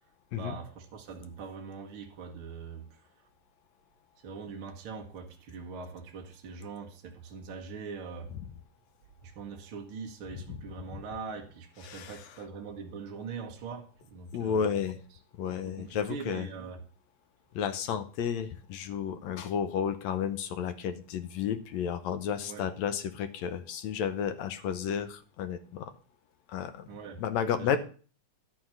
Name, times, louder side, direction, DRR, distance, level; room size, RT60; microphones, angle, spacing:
voice 1, 0.3-3.0 4.2-8.3 9.2-14.9 15.4-16.8 22.4-22.7 26.9-27.2 27.6-27.8, right 5 dB, 55° right, 1.7 m, -42 dB
voice 2, 11.8-12.4 14.3-15.0 15.4-16.5 17.6-25.9 26.5-26.9 27.2-27.8, left 8 dB, 70° left, 1.9 m, -32 dB
11.5 x 4.3 x 7.7 m
omnidirectional pair, 3.8 m